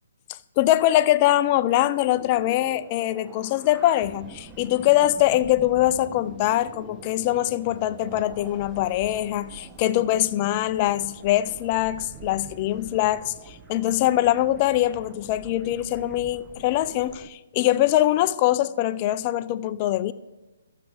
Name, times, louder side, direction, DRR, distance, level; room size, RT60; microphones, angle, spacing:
voice 1, 0.6-20.1, left 14 dB, 30° left, 0.4 m, -23 dB
sound 1, 2.0-17.3, right 5 dB, 15° right, 0.6 m, -46 dB
12.5 x 7.4 x 4.7 m
hypercardioid pair, 150°, 0 cm